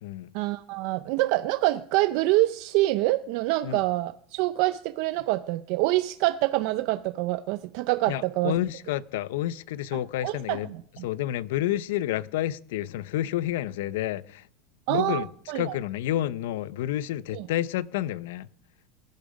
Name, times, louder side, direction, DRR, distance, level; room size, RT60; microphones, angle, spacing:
voice 1, 0.3-8.5 10.2-11.1 14.9-15.8 17.3-17.5, right 18 dB, 55° right, 0.5 m, -26 dB
voice 2, 8.1-10.7 11.0-14.5 14.9-15.3 15.5-18.5, left 13 dB, 80° left, 0.6 m, -29 dB
19.0 x 10.5 x 5.2 m
supercardioid pair, 155°, 0 cm